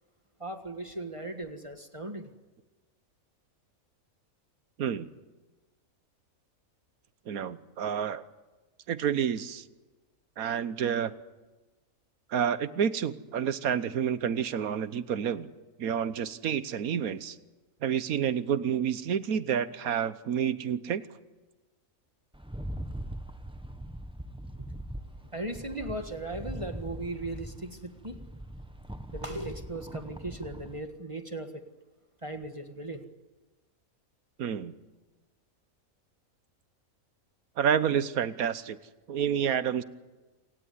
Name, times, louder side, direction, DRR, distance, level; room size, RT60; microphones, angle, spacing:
voice 1, 0.4-2.3 25.3-28.2 29.1-31.6 32.2-33.0, right 2 dB, 25° right, 7 dB, 1.5 m, -37 dB
voice 2, 7.3-8.2 8.9-9.6 10.4-11.1 12.3-15.5 15.8-17.4 17.8-21.0 34.4-34.7 37.6-38.8 39.1-39.8, right 8 dB, 85° right, 14 dB, 1.4 m, -29 dB
Rattle, 22.3-30.8, right 1 dB, 5° right, 1.0 m, -41 dB
27.5 x 17.0 x 9.5 m, 1.2 s
omnidirectional pair, 1.5 m